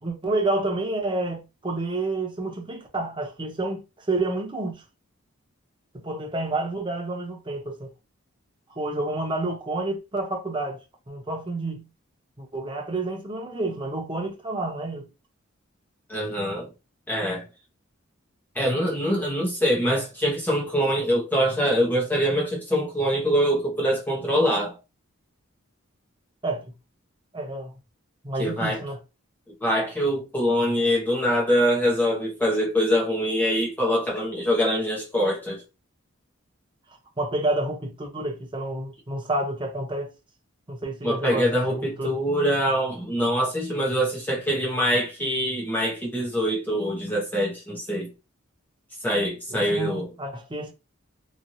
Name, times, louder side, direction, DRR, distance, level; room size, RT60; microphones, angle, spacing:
voice 1, 0.0-4.8 5.9-7.9 8.8-10.8 11.1-11.9 12.4-15.1 26.4-26.6 27.3-27.7 28.2-29.0 37.2-40.1 40.7-42.2 49.5-50.7, right 2 dB, 25° right, 0.7 m, -29 dB
voice 2, 16.1-16.7 17.1-17.5 18.5-24.8 28.4-28.8 29.6-35.6 41.0-48.1 49.0-50.1, equal, 10° left, 0.9 m, -24 dB
3.0 x 2.6 x 2.7 m
head